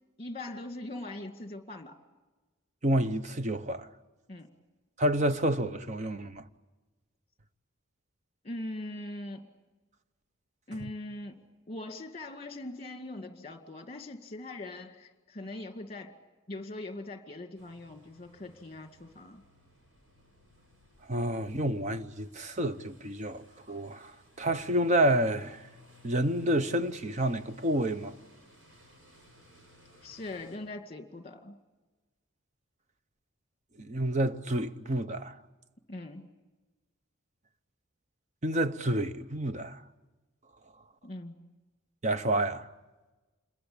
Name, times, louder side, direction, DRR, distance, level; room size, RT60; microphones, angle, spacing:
voice 1, 0.2-2.0 4.3-4.5 8.4-9.4 10.7-11.4 11.7-16.1 16.5-19.4 30.0-31.5 35.9-36.3 41.0-41.5, left 2 dB, 30° left, 2.0 m, -41 dB
voice 2, 2.8-3.9 5.0-6.4 10.8-10.9 21.1-24.1 24.4-25.6 26.0-28.1 33.8-35.4 38.4-39.8 42.0-42.7, right 1 dB, 35° right, 0.8 m, -29 dB
sound 1, 17.6-30.6, left 1 dB, 70° right, 7.2 m, -60 dB
27.5 x 22.0 x 8.6 m
head